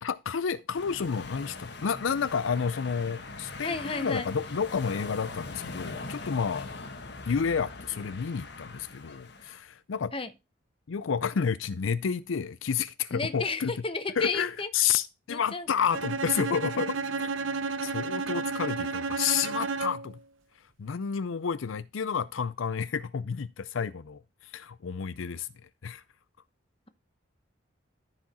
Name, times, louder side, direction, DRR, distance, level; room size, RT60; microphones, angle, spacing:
voice 1, 0.0-6.7 7.3-10.1 10.9-13.7 14.2-17.3 17.6-20.2 20.8-25.5 25.8-26.0, left 6 dB, 80° left, 0.5 m, -30 dB
sound 1, 0.7-9.6, left 3 dB, 55° left, 1.3 m, -41 dB
voice 2, 3.6-4.4 10.1-10.3 13.1-14.7 15.3-15.7, left 4 dB, 25° left, 0.9 m, -32 dB
Bowed string instrument, 15.9-20.2, right 4 dB, 80° right, 0.7 m, -32 dB
14.0 x 5.0 x 4.3 m
head